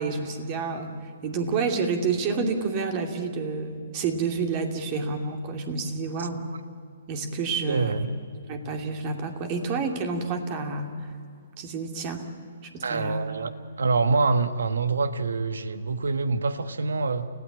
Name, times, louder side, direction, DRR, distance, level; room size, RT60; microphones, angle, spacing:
voice 1, 0.0-6.5 7.1-8.0 8.5-11.1 11.6-12.3 12.7-13.3, right 4 dB, 35° right, 5 dB, 2.6 m, -29 dB
voice 2, 7.7-8.1 12.8-13.5 13.8-17.3, right 4 dB, 75° right, 11 dB, 1.4 m, -25 dB
29.0 x 16.0 x 8.7 m, 2.3 s
figure-of-eight pair, 130°, 0 cm